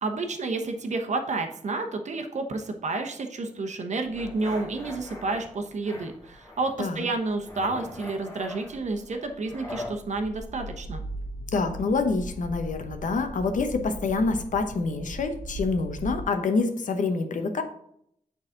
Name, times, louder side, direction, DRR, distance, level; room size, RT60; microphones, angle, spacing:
voice 1, 0.0-11.0, right 3 dB, 65° right, 5 dB, 0.9 m, -30 dB
sound 1, 4.1-5.4 5.8-6.7 7.0-10.0, left 2 dB, 30° left, 1.2 m, -41 dB
sound 2, 4.1-16.2, right 1 dB, 35° right, 1.5 m, -40 dB
voice 2, 11.5-17.6, left 3 dB, 85° left, 7 dB, 0.9 m, -26 dB
9.0 x 4.0 x 3.8 m, 0.71 s
wide cardioid pair, 145°, 13 cm